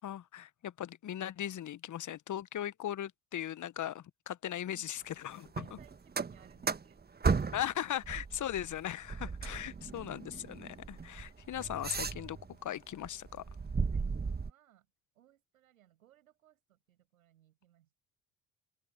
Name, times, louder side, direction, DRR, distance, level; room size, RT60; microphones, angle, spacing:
voice 1, 0.0-5.7 7.5-13.4, left 11 dB, 45° left, 1.2 m, -38 dB
voice 2, 4.5-4.9 5.6-7.6 9.1-9.9 11.9-12.0 13.9-14.9 15.2-17.9, right 12 dB, 85° right, 6.9 m, -65 dB
sound 1, 5.4-7.8 8.0-12.5 13.0-14.5, right 5 dB, 25° right, 1.5 m, -36 dB
open air
hypercardioid pair, 50°, 41 cm